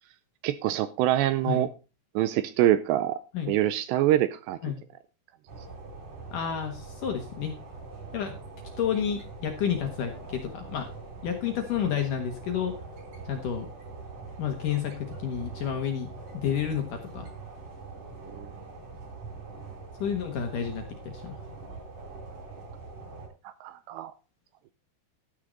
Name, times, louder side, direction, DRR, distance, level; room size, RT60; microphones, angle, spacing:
voice 1, 0.4-1.7 2.2-3.2 3.5-4.6 18.3-18.5 23.4-24.1, right 13 dB, 80° right, 14 dB, 2.6 m, -25 dB
sound 1, 5.5-23.3, right 3 dB, 45° right, 4.7 m, -43 dB
voice 2, 6.3-7.5 8.1-8.3 8.8-10.9 11.2-12.7 13.3-13.7 14.4-16.1 16.3-17.3 20.0-21.4, left 8 dB, 65° left, 5 dB, 2.3 m, -30 dB
13.0 x 9.5 x 4.0 m, 0.31 s
omnidirectional pair, 5.4 m